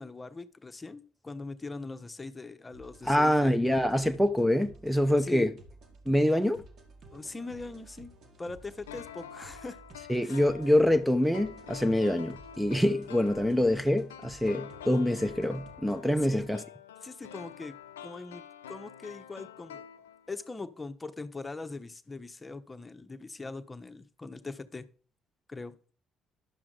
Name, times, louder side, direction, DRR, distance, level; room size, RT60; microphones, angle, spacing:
voice 1, 0.0-3.7 4.0-4.2 5.2-5.5 7.1-8.1 8.4-9.8 10.2-10.5 16.3-16.5 17.0-17.8 18.0-18.4 18.7-19.8 20.3-24.8 25.5-25.8, left 3 dB, 25° left, 1.0 m, -41 dB
sound 1, 2.7-16.5, right 2 dB, 55° right, 1.9 m, -54 dB
voice 2, 3.0-5.5 6.1-6.6 10.1-16.6, left 1 dB, 5° right, 0.8 m, -25 dB
sound 2, 8.9-20.5 20.8-20.9, left 9 dB, 80° left, 0.6 m, -47 dB
11.5 x 7.4 x 3.9 m
figure-of-eight pair, 45°, 0 cm